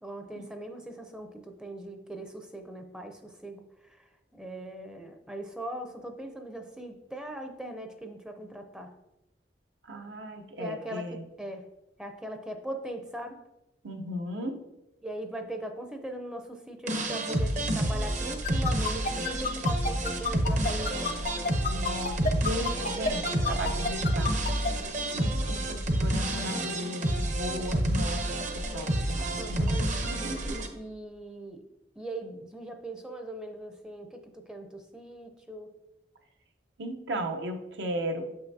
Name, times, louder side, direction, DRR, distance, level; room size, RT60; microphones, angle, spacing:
voice 1, 0.0-9.0 10.6-11.7 12.0-13.4 15.0-21.2 29.4-31.6 32.0-35.7, right 1 dB, 5° right, 5 dB, 0.5 m, -40 dB
voice 2, 9.8-11.2 13.8-14.6 21.7-24.4 25.1-29.8 30.0-30.5 36.8-38.3, equal, 80° right, 5 dB, 0.7 m, -36 dB
sound 1, 16.9-30.7, right 1 dB, 45° right, 0.7 m, -29 dB
sound 2, 18.4-24.7, left 5 dB, 50° left, 0.5 m, -29 dB
7.3 x 5.7 x 2.7 m, 0.93 s
head